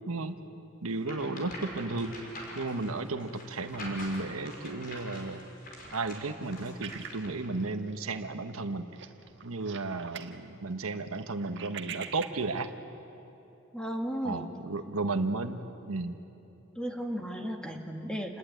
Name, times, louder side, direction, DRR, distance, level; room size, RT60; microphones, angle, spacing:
voice 1, 0.1-0.4 0.8-2.1 2.5-5.5 5.9-8.9 9.4-12.7 14.2-16.1, right 3 dB, 90° right, 7 dB, 1.3 m, -34 dB
sound 1, 1.0-7.5, left 1 dB, 45° left, 6.0 m, -45 dB
sound 2, 6.8-8.2 8.5-8.7 8.9-10.4 10.7-12.7, right 8 dB, 60° right, 1.5 m, -44 dB
voice 2, 13.7-14.5 16.8-18.4, equal, 5° left, 2 dB, 2.1 m, -35 dB
29.0 x 20.5 x 9.2 m, 3.0 s
head